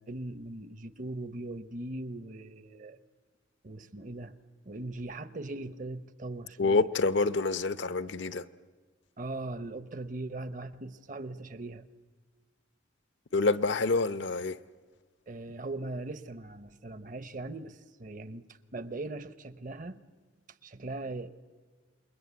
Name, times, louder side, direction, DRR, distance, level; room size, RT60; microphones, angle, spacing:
voice 1, 0.0-3.0 3.6-4.4 4.6-6.8 9.2-11.8 13.3-13.4 15.3-20.0 20.6-21.3, right 2 dB, 40° right, 0.8 m, -40 dB
voice 2, 6.6-8.5 13.3-14.6, left 3 dB, 65° left, 0.7 m, -27 dB
27.5 x 21.5 x 8.2 m
head